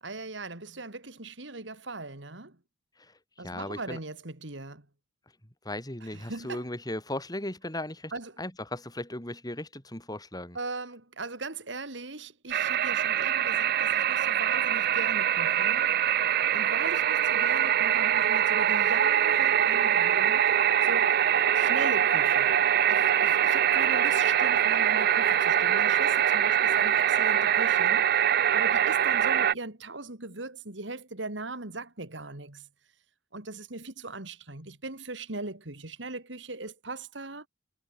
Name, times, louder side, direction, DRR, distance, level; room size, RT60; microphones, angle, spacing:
voice 1, 0.0-2.6 3.4-4.9 6.0-6.7 8.1-8.4 10.5-15.9 16.5-20.5 20.8-21.2 21.5-22.6 22.9-28.1 28.5-32.7 33.3-37.5, right 3 dB, 70° right, 3.0 m, -39 dB
voice 2, 3.4-4.0 5.6-8.1 8.4-10.6, left 1 dB, 20° left, 6.0 m, -36 dB
sound 1, 12.5-29.5, right 10 dB, 55° right, 0.5 m, -24 dB
head